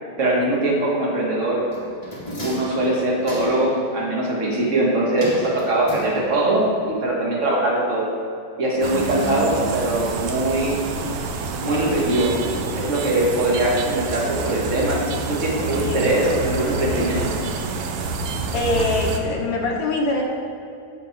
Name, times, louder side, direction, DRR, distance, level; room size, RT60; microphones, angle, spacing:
voice 1, 0.0-1.7 2.4-8.1 8.6-10.8 11.6-12.3 12.7-15.0 15.3-17.2, right 1 dB, 35° right, -3 dB, 1.2 m, -21 dB
sound 1, 1.7-3.8 5.2-6.6 6.9-7.0, equal, 15° left, 1.1 m, -34 dB
Conrose Park - Railtrack, 8.8-19.2, right 3 dB, 75° right, 2.2 m, -28 dB
voice 2, 18.5-20.2, left 2 dB, 65° left, 0 dB, 1.9 m, -23 dB
16.5 x 5.8 x 4.6 m, 2.5 s
omnidirectional pair, 4.1 m